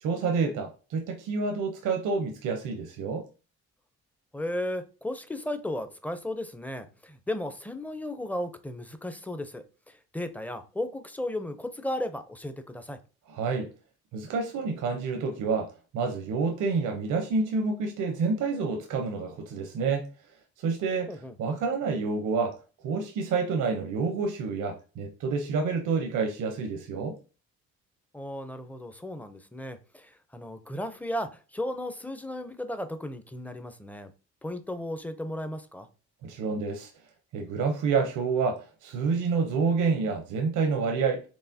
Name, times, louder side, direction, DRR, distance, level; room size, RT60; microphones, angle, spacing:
voice 1, 0.0-3.2 13.3-13.7 14.1-20.1 20.6-22.6 22.8-27.2 36.2-36.9 37.3-41.2, right 4 dB, 80° right, 0.8 m, -28 dB
voice 2, 4.3-13.0 21.1-21.4 28.1-34.1 34.4-35.9, left 1 dB, 5° left, 0.6 m, -35 dB
4.7 x 3.0 x 2.7 m
cardioid pair, 90°, 30 cm